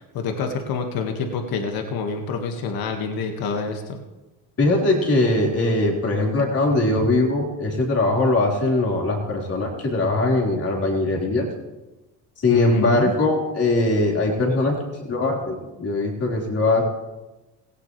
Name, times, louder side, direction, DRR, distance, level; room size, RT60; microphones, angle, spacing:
voice 1, 0.0-4.0 12.5-13.1, left 4 dB, 60° left, 4 dB, 2.0 m, -27 dB
voice 2, 4.6-11.5 12.4-14.7 15.1-16.8, left 2 dB, 35° left, -2 dB, 4.7 m, -21 dB
17.0 x 16.5 x 3.4 m, 1.1 s
supercardioid pair, 95°, 41 cm